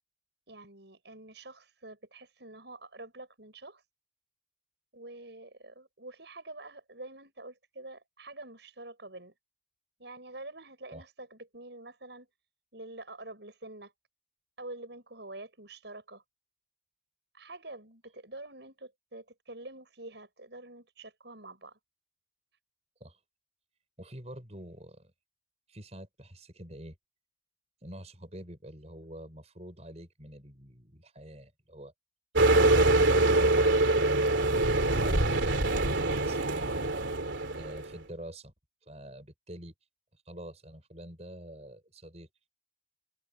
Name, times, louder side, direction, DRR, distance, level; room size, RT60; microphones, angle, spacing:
voice 1, 0.5-3.8 4.9-9.3 10.0-12.3 12.7-13.9 14.6-16.2 17.3-21.8, right 2 dB, 65° right, 7.4 m, -46 dB
voice 2, 24.0-25.1 25.7-26.9 27.8-31.9 32.4-34.4 34.8-37.1 37.5-38.5 38.8-39.7 40.1-42.5, right 1 dB, 35° right, 6.7 m, -46 dB
sound 1, 32.4-37.9, right 2 dB, 85° right, 3.0 m, -24 dB
head